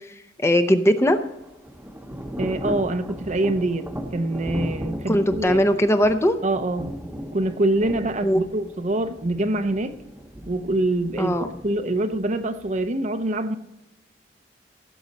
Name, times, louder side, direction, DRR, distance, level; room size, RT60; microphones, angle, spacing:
voice 1, 0.4-1.2 5.1-6.4 8.2-8.4 11.2-11.5, equal, 15° left, 8 dB, 0.6 m, -19 dB
Thunder / Rain, 1.2-12.8, equal, 10° right, 0.9 m, -36 dB
voice 2, 2.4-3.9 4.1-5.6 6.4-6.9 7.3-10.0 10.5-13.6, right 1 dB, 45° right, 9 dB, 0.7 m, -25 dB
16.0 x 7.1 x 4.1 m, 0.94 s
head